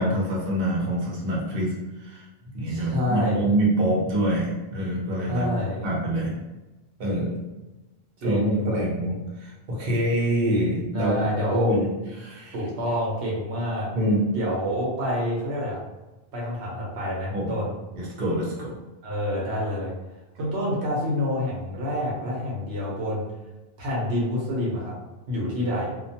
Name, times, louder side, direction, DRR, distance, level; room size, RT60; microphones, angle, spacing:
voice 1, 0.0-2.2 2.5-5.5 5.8-6.3 7.0-7.3 8.2-11.1 11.5-12.5 13.9-14.2 17.3-17.5 17.9-18.8, right 1 dB, 60° right, -4 dB, 0.9 m, -25 dB
voice 2, 2.7-3.5 5.3-5.9 8.2-8.9 10.9-11.7 12.5-13.9 14.3-15.8 16.3-17.7 19.0-19.9 20.3-23.3 23.8-24.9 25.3-25.9, left 1 dB, 85° right, -4 dB, 1.0 m, -27 dB
2.4 x 2.2 x 2.7 m, 1.1 s
omnidirectional pair, 1.1 m